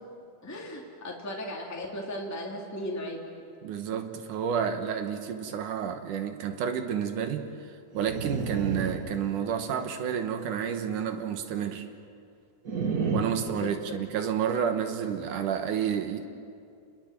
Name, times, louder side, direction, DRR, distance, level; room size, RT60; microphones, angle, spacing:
voice 1, 0.4-3.4 13.6-13.7, left 1 dB, 5° left, -1 dB, 2.5 m, -36 dB
voice 2, 3.6-11.9 13.0-16.2, right 8 dB, 75° right, 7 dB, 2.7 m, -30 dB
sound 1, 7.9-9.8 12.6-14.3, right 4 dB, 40° right, 1.4 m, -32 dB
29.5 x 21.5 x 7.5 m, 2.4 s
omnidirectional pair, 3.7 m